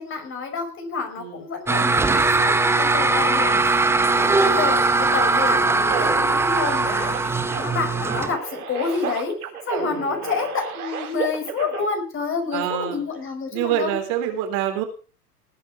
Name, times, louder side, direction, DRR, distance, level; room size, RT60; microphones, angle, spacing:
voice 1, 0.0-7.2 7.5-9.4 9.7-13.9, left 5 dB, 25° left, 5 dB, 5.1 m, -29 dB
sound 1, 1.7-8.3, right 3 dB, 5° right, 0.9 m, -20 dB
voice 2, 4.0-4.4 9.8-10.0 12.5-13.0 13.5-14.8, right 11 dB, 45° right, 5 dB, 3.8 m, -26 dB
sound 2, 5.4-11.9, right 7 dB, 70° right, 3.9 m, -32 dB
19.5 x 9.6 x 4.9 m, 0.37 s
figure-of-eight pair, 95°, 46 cm